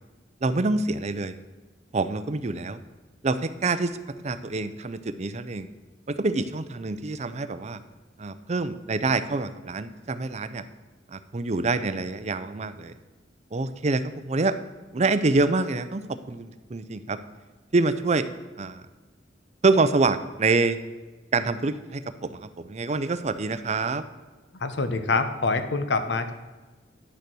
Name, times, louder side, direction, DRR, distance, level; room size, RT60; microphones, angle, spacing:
voice 1, 0.4-1.4 1.9-2.8 3.2-3.9 4.2-5.7 6.1-7.8 8.2-10.6 11.1-12.9 13.5-14.5 14.9-17.2 17.7-18.2 18.6-18.8 19.6-20.8 21.3-24.0, right 3 dB, 40° right, 11 dB, 0.6 m, -26 dB
voice 2, 24.5-26.3, left 3 dB, 75° left, 9 dB, 0.9 m, -25 dB
10.0 x 6.7 x 6.2 m, 1.3 s
head